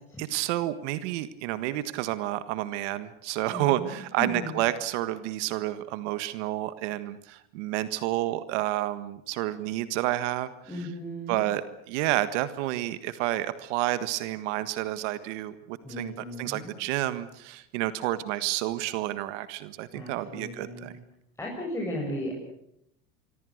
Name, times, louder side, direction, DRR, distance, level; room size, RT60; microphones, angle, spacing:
voice 1, 0.2-10.5 11.3-20.9, right 15 dB, 75° right, 13 dB, 1.6 m, -30 dB
voice 2, 3.5-4.6 10.7-11.5 15.8-16.7 19.9-21.0 21.4-22.3, equal, 5° left, -4 dB, 7.9 m, -36 dB
25.5 x 24.0 x 6.6 m, 0.76 s
supercardioid pair, 115°, 36 cm